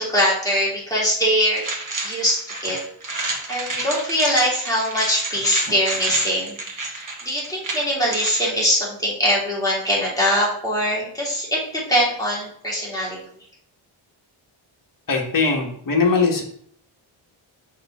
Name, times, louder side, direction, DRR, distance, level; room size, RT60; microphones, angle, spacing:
voice 1, 0.0-1.6 2.0-2.8 3.5-6.6 6.8-13.2, equal, 5° left, -6 dB, 2.5 m, -22 dB
sound 1, 1.6-8.4, right 2 dB, 40° right, 1.2 m, -29 dB
voice 2, 15.1-16.4, left 4 dB, 40° left, 1 dB, 1.4 m, -20 dB
6.4 x 4.1 x 3.6 m, 0.63 s
wide cardioid pair, 120°, 49 cm